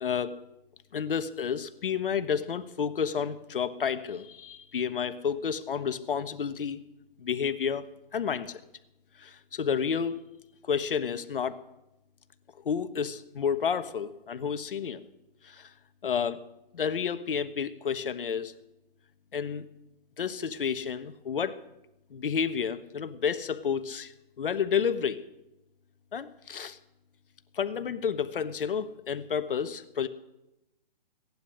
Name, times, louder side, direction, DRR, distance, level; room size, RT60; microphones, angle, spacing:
voice 1, 0.0-0.4 0.9-6.8 7.2-7.8 8.1-8.6 9.2-10.2 10.7-11.6 12.6-15.0 15.4-15.7 16.0-16.4 16.7-18.5 19.3-19.6 20.2-21.6 22.1-25.2 26.1-26.8 27.5-30.1, left 7 dB, 65° left, 11 dB, 1.2 m, -30 dB
17.5 x 11.5 x 6.4 m, 0.92 s
hypercardioid pair, 160°, 29 cm